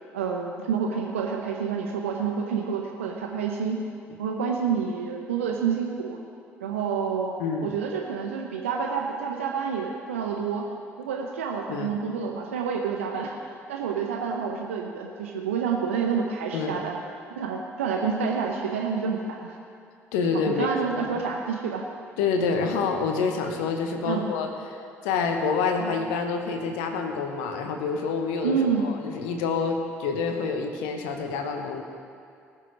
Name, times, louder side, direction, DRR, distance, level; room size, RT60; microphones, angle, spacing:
voice 1, 0.1-3.8 4.2-6.2 6.6-7.4 7.6-10.6 11.0-13.4 13.7-17.0 17.3-19.5 20.5-21.8 24.0-24.3 28.4-28.9, right 6 dB, 80° right, 1 dB, 0.8 m, -28 dB
voice 2, 7.4-7.7 11.7-11.9 16.5-16.9 20.1-20.7 21.0-21.1 22.2-24.8 25.0-31.8, left 5 dB, 75° left, 5 dB, 1.3 m, -27 dB
19.5 x 6.9 x 4.7 m, 2.4 s
figure-of-eight pair, 50°, 7 cm